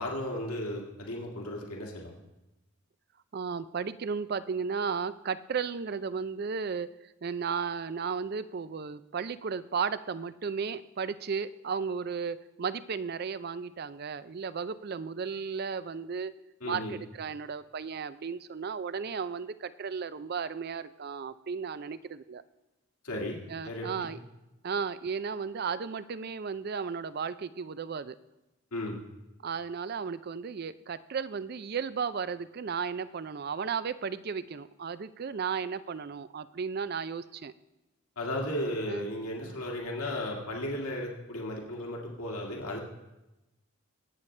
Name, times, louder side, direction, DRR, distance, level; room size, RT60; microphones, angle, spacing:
voice 1, 0.0-2.1 16.6-16.9 23.0-24.1 28.7-29.0 38.2-42.8, left 1 dB, 80° left, -1 dB, 1.9 m, -35 dB
voice 2, 3.3-6.9 7.2-16.3 16.6-22.4 23.5-24.2 24.6-28.2 29.4-37.5 38.9-39.1 39.4-39.6, right 6 dB, 45° right, 15 dB, 0.4 m, -34 dB
21.5 x 8.5 x 3.3 m, 0.97 s
head